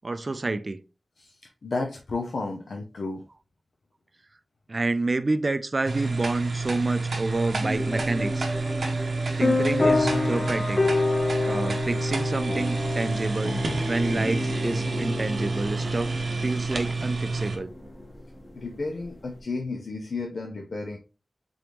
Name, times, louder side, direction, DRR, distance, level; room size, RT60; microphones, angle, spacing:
voice 1, 0.0-0.8 4.7-8.5 9.4-10.8 11.5-13.6 13.9-16.1 16.4-17.7, right 2 dB, 50° right, 0.3 m, -28 dB
voice 2, 1.6-3.2 18.5-21.0, left 3 dB, 85° left, 0.5 m, -32 dB
sound 1, 5.9-17.6, right 3 dB, 90° right, 0.7 m, -29 dB
sound 2, 7.6-19.4, equal, 5° left, 0.9 m, -38 dB
sound 3, 9.4-17.5, left 3 dB, 40° left, 0.6 m, -28 dB
3.9 x 3.4 x 3.0 m
wide cardioid pair, 75°, 0 cm